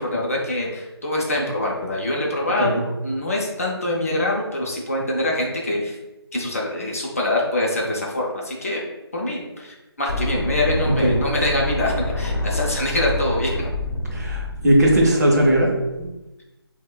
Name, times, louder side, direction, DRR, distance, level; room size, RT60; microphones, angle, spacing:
voice 1, 0.0-6.0 6.3-8.8 9.1-13.5, left 1 dB, 35° left, -3 dB, 0.4 m, -24 dB
sound 1, 10.1-16.1, left 1 dB, 80° left, 0.7 m, -27 dB
voice 2, 14.1-16.1, right 1 dB, 40° right, -2 dB, 0.5 m, -18 dB
3.1 x 2.1 x 2.2 m, 0.98 s
figure-of-eight pair, 165°, 14 cm